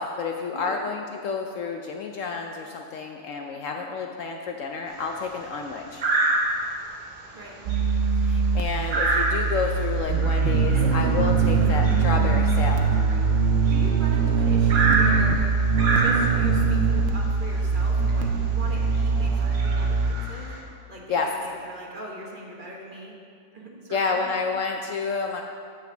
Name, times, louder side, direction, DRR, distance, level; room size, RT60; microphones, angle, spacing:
voice 1, 0.0-6.0 8.2-12.9 21.1-21.3 23.9-25.4, left 5 dB, 65° left, 3 dB, 0.8 m, -29 dB
sound 1, 4.9-5.3 6.0-6.8 7.2-7.4 7.7-14.0 14.7-16.6 17.6-17.7 18.1-18.2 18.8-19.0 19.4-20.6, right 2 dB, 85° right, 2.0 m, -27 dB
voice 2, 7.3-7.7 10.7-10.9 11.5-11.7 13.1-13.3 13.6-15.5 15.9-20.5 20.9-23.2 23.5-24.3, right 1 dB, 35° right, -2 dB, 1.2 m, -40 dB
sound 2, 7.6-20.1, right 5 dB, 65° right, 0.7 m, -22 dB
6.7 x 6.4 x 6.8 m, 2.3 s
omnidirectional pair, 1.7 m